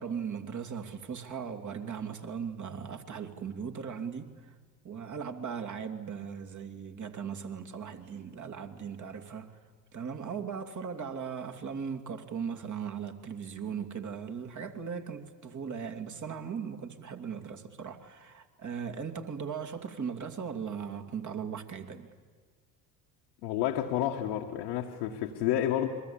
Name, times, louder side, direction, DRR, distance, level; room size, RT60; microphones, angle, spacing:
voice 1, 0.0-4.5 4.8-9.6 9.9-22.1, right 6 dB, 35° right, 2.7 m, -38 dB
voice 2, 23.4-25.9, left 11 dB, 70° left, 1.8 m, -30 dB
29.0 x 22.5 x 8.8 m
hypercardioid pair, 60°, 48 cm